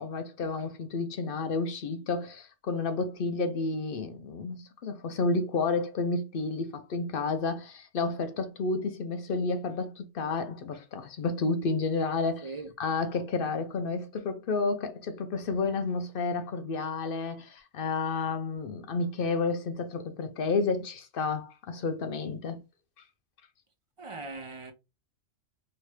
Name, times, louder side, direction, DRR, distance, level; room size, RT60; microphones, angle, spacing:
voice 1, 0.0-22.6, left 3 dB, 60° left, 0.6 m, -31 dB
voice 2, 24.0-24.7, right 3 dB, 50° right, 0.4 m, -39 dB
3.2 x 2.8 x 3.1 m
omnidirectional pair, 1.2 m